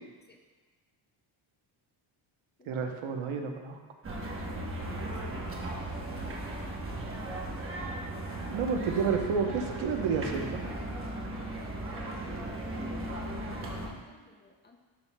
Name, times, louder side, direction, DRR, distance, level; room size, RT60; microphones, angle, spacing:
voice 1, 2.7-3.8 8.5-10.6, right 5 dB, 75° right, 4 dB, 1.0 m, -30 dB
sound 1, 4.0-13.9, right 1 dB, 25° right, 1.0 m, -37 dB
voice 2, 5.2-7.0 11.5-14.8, left 3 dB, 20° left, 2 dB, 0.4 m, -58 dB
12.0 x 5.7 x 2.2 m, 1.3 s
cardioid pair, 140°, 49 cm